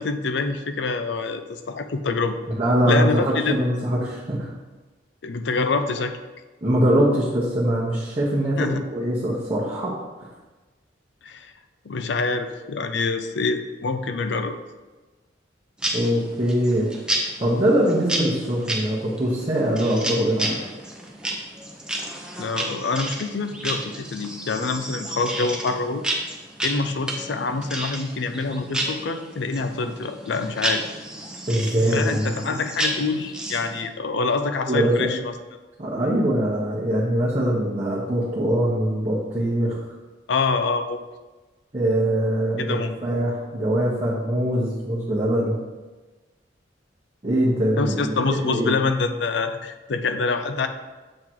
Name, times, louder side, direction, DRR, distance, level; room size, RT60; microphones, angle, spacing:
voice 1, 0.0-2.4 2.8-3.6 5.2-6.1 8.6-8.8 11.2-11.5 11.9-14.6 22.4-26.0 26.6-30.8 31.9-35.3 40.3-41.0 42.6-42.9 47.8-50.7, left 4 dB, 65° left, 9 dB, 0.5 m, -26 dB
voice 2, 2.5-4.5 6.6-9.9 10.2-10.3 15.9-16.9 17.1-20.6 31.5-32.6 34.7-35.2 35.8-39.8 41.7-45.6 47.2-48.2 48.5-48.7, right 1 dB, 30° right, -7 dB, 1.0 m, -22 dB
sound 1, 15.8-33.9, right 1 dB, 5° right, 0.7 m, -32 dB
7.5 x 3.7 x 4.6 m, 1.2 s
head